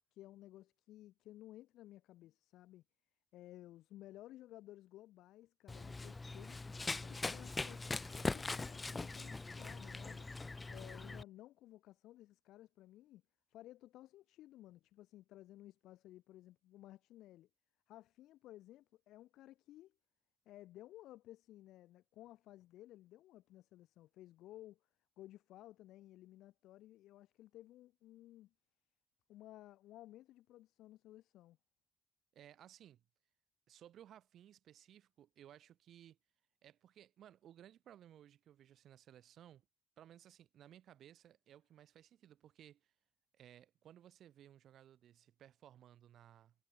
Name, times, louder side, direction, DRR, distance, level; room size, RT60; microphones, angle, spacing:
voice 1, 0.0-2.8 3.3-10.3 10.7-13.2 13.5-17.5 17.9-19.9 20.4-24.8 25.2-28.5 29.3-31.6, left 15 dB, 90° left, 1.4 m, -57 dB
Run, 5.7-11.2, left 3 dB, 25° left, 0.5 m, -42 dB
voice 2, 32.3-33.0 33.7-36.2 36.6-39.6 40.0-42.9 43.3-46.5, right 11 dB, 70° right, 4.6 m, -60 dB
cardioid pair, 90°, 0 cm